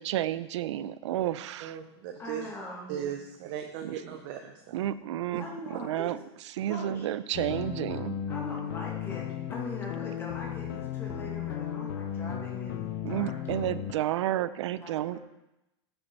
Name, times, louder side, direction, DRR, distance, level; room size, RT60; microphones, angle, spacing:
voice 1, 0.0-1.8 3.8-4.0 4.7-6.2 6.5-8.2 13.0-15.2, right 12 dB, 85° right, 16 dB, 0.5 m, -31 dB
voice 2, 1.6-2.5 2.9-4.8, right 9 dB, 45° right, 4 dB, 0.7 m, -37 dB
voice 3, 2.2-2.9 5.4-6.1 6.7-7.1 8.3-13.7 14.7-15.2, left 1 dB, 15° left, -2 dB, 1.7 m, -42 dB
sound 1, 7.3-13.9, left 9 dB, 60° left, 0.7 m, -35 dB
8.7 x 6.9 x 4.4 m, 0.92 s
supercardioid pair, 165°, 15 cm